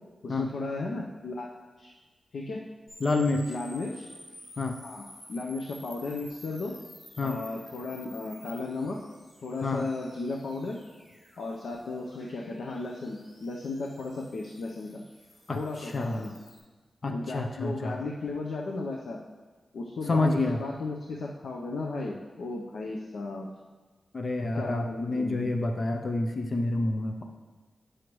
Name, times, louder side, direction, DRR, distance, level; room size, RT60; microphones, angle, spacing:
voice 1, 0.2-1.5 1.8-1.9 2.3-2.6 3.5-4.1 4.8-6.8 7.2-9.0 9.4-10.8 11.4-15.0 15.5-16.3 17.1-19.2 19.7-23.5 24.5-25.4, left 3 dB, 90° left, -1 dB, 0.6 m, -35 dB
sound 1, 2.9-16.6, left 1 dB, 65° left, 2.5 m, -52 dB
voice 2, 3.0-3.5 4.6-4.8 7.2-7.4 9.6-9.8 15.5-16.3 17.0-18.0 20.1-20.6 24.1-27.2, left 2 dB, 40° left, 3 dB, 0.5 m, -28 dB
9.4 x 6.3 x 3.1 m, 1.3 s
wide cardioid pair, 150°, 0 cm